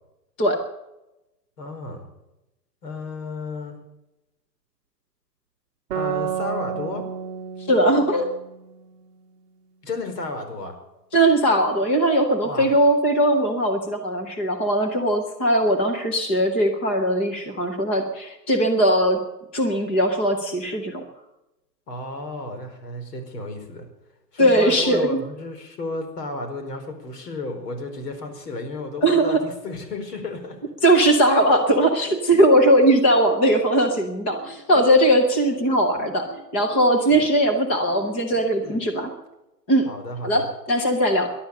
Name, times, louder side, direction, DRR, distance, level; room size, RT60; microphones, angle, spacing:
voice 1, 1.6-2.1 2.8-3.8 5.9-7.0 9.8-10.7 12.4-12.8 21.9-23.9 24.3-30.7 37.0-37.2 38.6-38.8 39.9-40.5, left 2 dB, 70° left, 5 dB, 4.7 m, -33 dB
sound 1, 5.9-9.4, right 8 dB, 20° right, 1.2 m, -31 dB
voice 2, 7.7-8.3 11.1-19.2 19.5-21.0 24.4-25.2 29.0-29.4 30.8-39.1 39.7-39.9 40.2-41.3, right 1 dB, 10° left, 4 dB, 0.5 m, -19 dB
sound 2, 31.8-39.1, equal, 25° left, 7.9 m, -45 dB
18.5 x 11.5 x 6.6 m, 0.94 s
hypercardioid pair, 160°, 50 cm